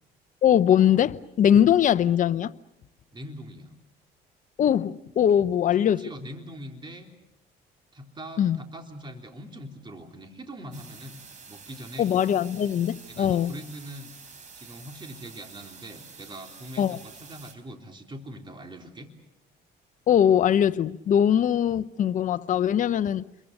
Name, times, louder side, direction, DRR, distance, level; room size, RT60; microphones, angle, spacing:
voice 1, 0.4-2.5 4.6-6.1 8.4-8.6 12.0-13.5 16.8-17.0 20.1-23.2, left 9 dB, 50° left, 0.9 m, -21 dB
voice 2, 3.1-3.8 6.0-7.1 7.9-12.1 13.1-14.1 14.6-19.1, equal, 25° right, 3.6 m, -42 dB
sound 1, 10.7-17.5, right 5 dB, 45° right, 4.6 m, -48 dB
29.5 x 23.0 x 6.7 m
cardioid pair, 110°, 17 cm